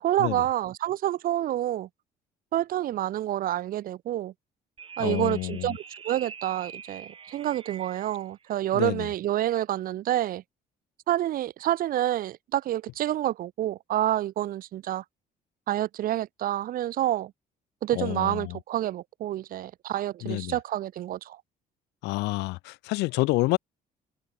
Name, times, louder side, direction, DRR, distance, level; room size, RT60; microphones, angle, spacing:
voice 1, 0.0-1.9 2.5-4.3 5.0-10.4 11.1-15.0 15.7-17.3 17.8-21.4, right 13 dB, 60° right, 0.7 m, -28 dB
sound 1, 4.8-8.3, right 6 dB, 30° right, 1.3 m, -44 dB
voice 2, 5.0-5.8 8.7-9.1 17.9-18.6 20.2-20.6 22.0-23.6, left 22 dB, 90° left, 0.8 m, -28 dB
cardioid pair, 110°, 17 cm